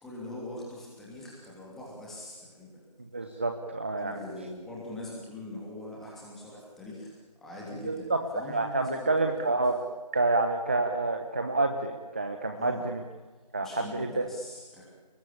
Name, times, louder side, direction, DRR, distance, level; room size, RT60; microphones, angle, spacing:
voice 1, 0.0-2.7 4.0-9.6 12.5-12.9 13.6-14.8, left 1 dB, ahead, -5 dB, 2.9 m, -42 dB
voice 2, 3.0-4.2 7.8-9.8 10.1-13.0 13.5-14.3, right 2 dB, 15° right, 5 dB, 1.0 m, -28 dB
30.0 x 20.0 x 8.8 m, 1.3 s
figure-of-eight pair, 170°, 21 cm